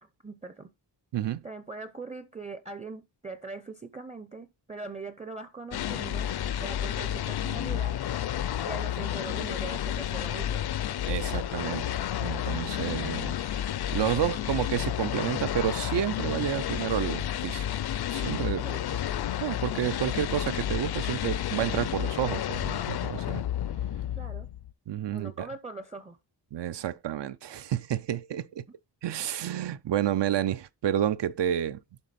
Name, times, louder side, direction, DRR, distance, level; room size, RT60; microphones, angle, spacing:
voice 1, 0.2-0.7 1.4-6.3 6.6-8.0 8.6-10.6 18.6-18.9 24.1-24.5 25.1-26.2, right 3 dB, 15° right, 0.5 m, -41 dB
voice 2, 1.1-1.4 11.1-17.6 18.1-18.6 18.9-19.0 19.4-23.4 24.9-25.5 26.5-28.6 29.0-31.8, right 10 dB, 75° right, 0.6 m, -30 dB
sound 1, 5.7-24.7, left 11 dB, 65° left, 0.5 m, -31 dB
11.5 x 4.0 x 4.1 m
wide cardioid pair, 175°, 43 cm